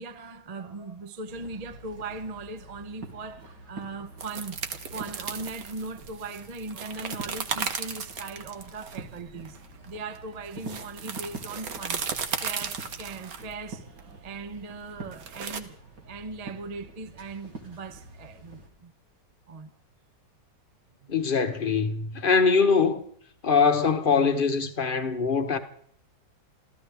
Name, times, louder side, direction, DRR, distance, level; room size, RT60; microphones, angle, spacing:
voice 1, 0.0-9.6 9.8-12.0 12.4-15.8 16.1-18.9 19.5-19.7 21.0-21.2, right 3 dB, 40° right, 0.6 m, -39 dB
sound 1, 1.3-18.7, right 2 dB, 70° right, 3.4 m, -46 dB
sound 2, 4.2-15.6, right 6 dB, 55° right, 1.5 m, -36 dB
voice 2, 21.1-23.0 23.4-25.6, left 5 dB, 35° left, 1.0 m, -23 dB
27.0 x 14.5 x 3.5 m
omnidirectional pair, 2.0 m